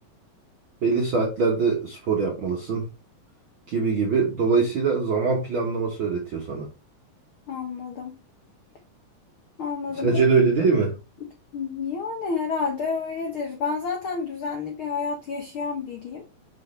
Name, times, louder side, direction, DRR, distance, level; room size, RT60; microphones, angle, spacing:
voice 1, 0.8-2.9 3.7-6.7 10.0-10.9, right 4 dB, 65° right, -1 dB, 1.2 m, -23 dB
voice 2, 7.5-8.2 9.6-10.2 11.2-16.3, left 5 dB, 80° left, 2 dB, 1.1 m, -30 dB
6.4 x 5.4 x 3.2 m, 0.29 s
omnidirectional pair, 4.0 m